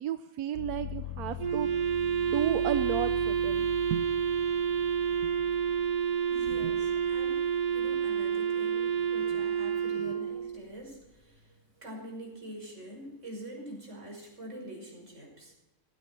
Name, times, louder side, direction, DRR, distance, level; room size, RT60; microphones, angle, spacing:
voice 1, 0.0-1.9 2.2-4.0 5.2-5.3, right 10 dB, 85° right, 10 dB, 1.2 m, -33 dB
sound 1, 0.5-8.4 8.8-9.6, left 8 dB, 55° left, 2.3 m, -44 dB
Wind instrument woodwind instrument, 1.4-10.7, right 8 dB, 35° right, 0.7 m, -29 dB
voice 2, 5.6-15.5, right 1 dB, 50° right, 0 dB, 5.9 m, -45 dB
18.5 x 16.0 x 4.5 m, 0.96 s
omnidirectional pair, 1.6 m